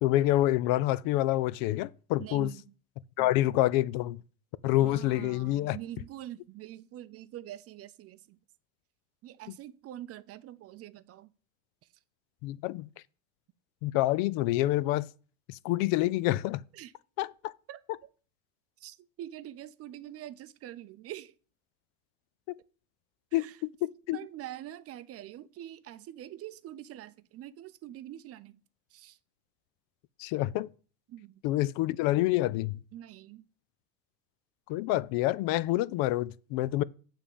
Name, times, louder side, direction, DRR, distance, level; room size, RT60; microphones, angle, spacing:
voice 1, 0.0-2.5 3.2-4.2 4.6-5.8 12.4-12.9 13.8-15.1 15.5-16.6 17.2-17.5 23.3-24.2 30.2-30.7 31.4-32.8 34.7-36.8, left 16 dB, 55° left, 0.5 m, -27 dB
voice 2, 2.2-2.6 3.2-3.3 4.8-8.4 9.2-11.3 16.7-16.9 17.7-17.8 18.8-21.3 23.3-23.6 24.1-28.6 28.9-29.2 31.1-31.4 32.9-33.4, right 13 dB, 35° right, 0.5 m, -45 dB
9.0 x 3.7 x 7.0 m
supercardioid pair, 115°, 42 cm